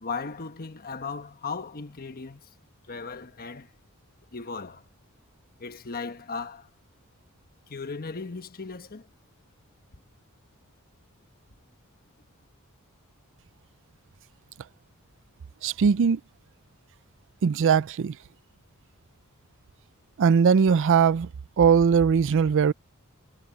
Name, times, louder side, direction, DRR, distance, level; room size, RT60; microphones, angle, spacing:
voice 1, 0.0-2.4 2.9-3.7 4.3-4.8 5.6-6.7 7.7-9.1, left 4 dB, 45° left, 1.2 m, -36 dB
voice 2, 15.6-16.2 17.4-18.1 20.2-21.3 21.6-22.7, right 6 dB, 60° right, 0.4 m, -20 dB
head